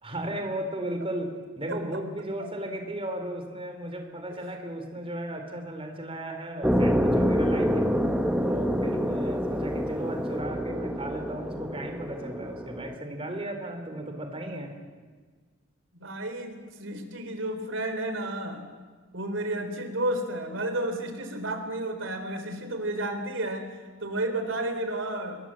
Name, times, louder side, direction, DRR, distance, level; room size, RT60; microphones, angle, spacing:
voice 1, 0.0-8.1 8.4-14.8, right 1 dB, 30° right, 5 dB, 3.8 m, -35 dB
voice 2, 1.7-2.0 4.3-4.4 15.9-18.7 19.1-23.7 24.0-25.4, right 1 dB, 70° right, 7 dB, 3.8 m, -32 dB
sound 1, 6.6-12.9, equal, 5° right, 1.4 m, -27 dB
26.5 x 22.0 x 7.7 m, 1.4 s
head